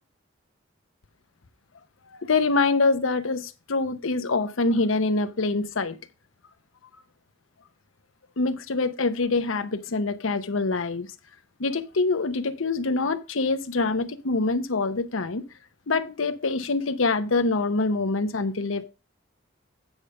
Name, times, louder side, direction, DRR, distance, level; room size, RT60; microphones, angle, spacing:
voice 1, 2.1-6.0 8.4-11.1 11.6-15.4 15.9-18.8, left 3 dB, 90° left, 0.8 m, -25 dB
8.9 x 5.1 x 5.3 m
head